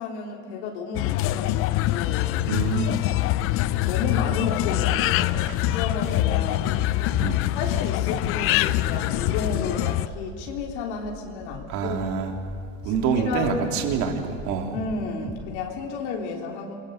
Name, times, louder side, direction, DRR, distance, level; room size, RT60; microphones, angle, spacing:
voice 1, 0.0-2.3 3.8-6.6 7.6-12.0 13.2-13.7 14.7-16.7, left 5 dB, 75° left, 0 dB, 3.7 m, -32 dB
sound 1, 0.9-10.1, left 16 dB, 40° left, 0.6 m, -24 dB
voice 2, 2.5-3.0 7.2-7.4 11.7-12.3 12.8-14.8, right 6 dB, 55° right, 3 dB, 3.4 m, -26 dB
sound 2, 3.4-3.5 3.8-4.0 4.2-6.4 6.6-6.9 7.1-7.4 7.6-7.8 8.1-8.3 8.6-14.0 14.3-15.0 15.2-15.4, right 1 dB, 10° right, 7.3 m, -39 dB
28.5 x 22.5 x 8.2 m, 2.1 s
supercardioid pair, 150°, 35 cm